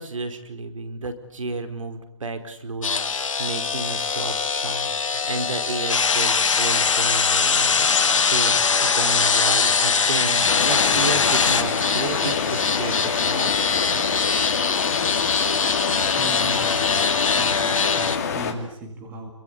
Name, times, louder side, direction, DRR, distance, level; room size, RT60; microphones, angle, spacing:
voice 1, 0.0-8.5 8.8-13.5, right 3 dB, 75° right, 9 dB, 4.6 m, -32 dB
sound 1, 2.8-18.2, left 5 dB, 85° left, 2.0 m, -25 dB
sound 2, 5.9-11.6, left 5 dB, 70° left, 1.7 m, -21 dB
sound 3, 10.4-18.5, left 6 dB, 30° left, 3.0 m, -27 dB
voice 2, 16.1-17.0 17.3-19.3, right 1 dB, 10° right, 3 dB, 2.3 m, -36 dB
29.5 x 23.0 x 8.3 m, 0.76 s
hypercardioid pair, 175°, 17 cm